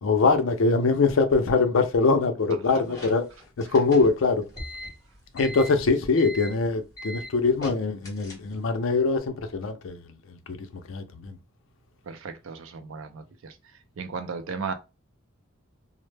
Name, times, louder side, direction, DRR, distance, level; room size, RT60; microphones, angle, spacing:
voice 1, 0.0-3.3 3.6-4.4 5.3-10.0 10.9-11.3, left 4 dB, 65° left, 0.5 m, -23 dB
sound 1, 2.5-8.8, equal, 15° left, 1.0 m, -40 dB
voice 2, 12.1-13.6 14.0-14.7, right 5 dB, 65° right, 0.5 m, -36 dB
2.1 x 2.0 x 3.1 m
head